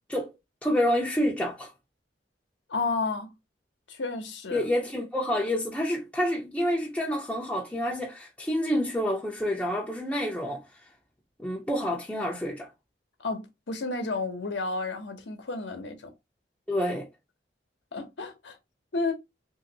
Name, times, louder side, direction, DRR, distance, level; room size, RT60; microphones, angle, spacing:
voice 1, 0.6-1.7 4.5-10.6 11.4-12.7 16.7-17.1, equal, 5° left, 0.5 m, -28 dB
voice 2, 2.7-3.3 3.9-4.7 13.2-16.1 17.9-18.6 18.9-19.1, left 3 dB, 85° left, 0.8 m, -31 dB
2.9 x 2.6 x 2.7 m
head